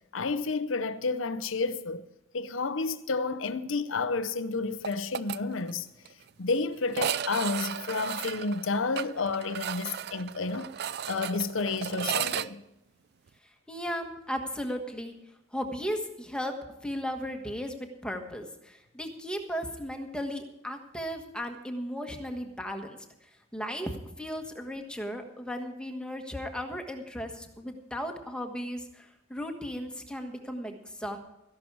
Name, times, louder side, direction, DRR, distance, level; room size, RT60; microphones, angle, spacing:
voice 1, 0.1-2.1 2.3-5.9 6.4-10.8 11.1-12.6, left 4 dB, 80° left, 0.7 m, -30 dB
sound 1, 4.8-5.4 5.7-5.8 6.1-6.2 6.9-12.5, right 9 dB, 55° right, 0.4 m, -34 dB
voice 2, 13.4-15.1 15.5-16.5 16.8-31.2, equal, 5° left, 1.3 m, -36 dB
14.0 x 11.5 x 4.7 m
head